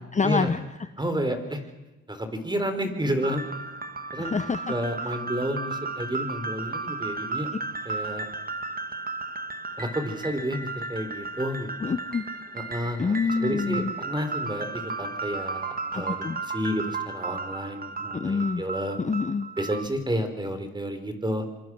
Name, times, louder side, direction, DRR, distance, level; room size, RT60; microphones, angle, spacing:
voice 1, 0.0-0.9 4.2-4.7 5.1-5.2 11.8-12.2 13.0-13.9 15.9-16.4 18.1-18.6 19.0-19.5, left 5 dB, 25° left, 11 dB, 0.9 m, -27 dB
voice 2, 1.0-1.6 2.1-3.4 4.1-4.3 4.7-7.5 7.9-8.3 9.8-11.9 12.5-13.1 13.4-16.3 16.5-19.0 19.6-21.4, equal, 15° right, 8 dB, 3.9 m, -30 dB
sound 1, 3.2-19.9, right 3 dB, 30° right, 1.7 m, -34 dB
26.5 x 24.0 x 6.2 m, 1.1 s
cardioid pair, 90°, 30 cm